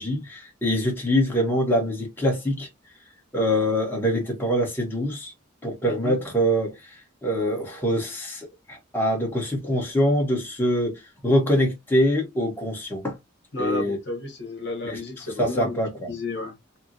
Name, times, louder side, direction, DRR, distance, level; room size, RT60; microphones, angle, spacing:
voice 1, 0.0-2.7 3.3-5.3 5.6-13.2 13.6-14.0 14.8-15.0 15.4-16.1, equal, 10° left, 1.1 m, -24 dB
voice 2, 5.8-6.2 13.5-15.8 16.1-16.5, left 2 dB, 60° left, 1.1 m, -32 dB
4.4 x 2.1 x 2.6 m
head